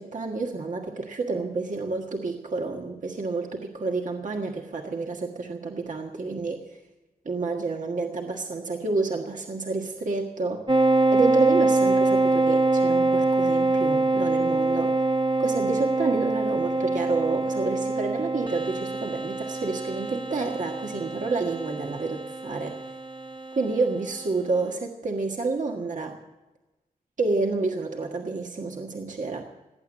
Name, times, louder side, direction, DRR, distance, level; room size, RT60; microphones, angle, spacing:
voice 1, 0.0-6.8 7.2-10.6 11.1-14.9 15.4-22.8 23.5-26.2 27.2-29.5, right 3 dB, 60° right, 1 dB, 1.6 m, -29 dB
sound 1, 10.7-23.8, right 2 dB, 30° right, 1.1 m, -24 dB
18.5 x 8.9 x 7.6 m, 1.1 s
cardioid pair, 60°, 15 cm